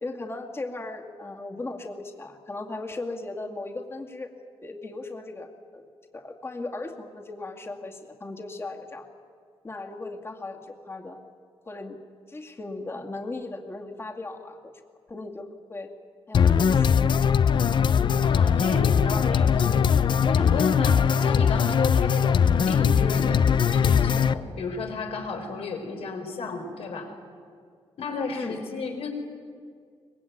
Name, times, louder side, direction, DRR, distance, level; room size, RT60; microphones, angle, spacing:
voice 1, 0.0-4.3 4.6-5.8 6.1-9.1 9.6-11.2 11.7-12.0 12.3-14.7 15.1-15.9 16.3-17.0 28.3-28.6, left 2 dB, 25° left, 3 dB, 2.3 m, -37 dB
sound 1, 16.3-24.3, left 7 dB, 50° left, 0.7 m, -21 dB
voice 2, 18.2-27.1 28.0-29.1, left 4 dB, 70° left, 4 dB, 4.7 m, -33 dB
24.0 x 21.0 x 9.5 m, 2.1 s
cardioid pair, 120°, 10 cm